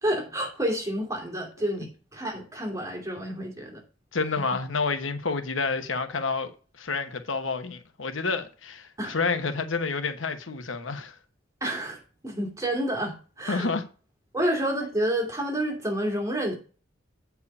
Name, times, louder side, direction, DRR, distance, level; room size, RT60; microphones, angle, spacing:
voice 1, 0.0-3.8 4.3-4.4 9.0-9.2 11.6-13.7 14.3-16.6, right 1 dB, 15° right, 2.6 m, -29 dB
voice 2, 4.1-6.5 6.8-11.2 13.5-13.8, left 4 dB, 90° left, 1.1 m, -29 dB
8.5 x 4.7 x 5.4 m
head